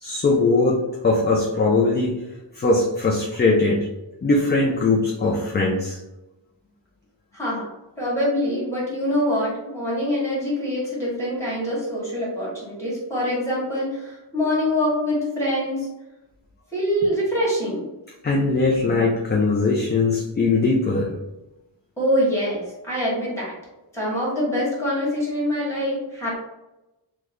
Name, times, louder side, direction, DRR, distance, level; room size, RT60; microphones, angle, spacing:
voice 1, 0.0-2.1 2.6-3.8 4.2-6.0 18.2-21.1, left 3 dB, 25° left, -2 dB, 0.4 m, -20 dB
voice 2, 7.3-7.7 8.0-15.9 16.7-17.9 22.0-23.5 23.9-26.4, equal, 5° left, -7 dB, 1.5 m, -24 dB
3.0 x 2.2 x 3.6 m, 0.99 s
wide cardioid pair, 125°, 44 cm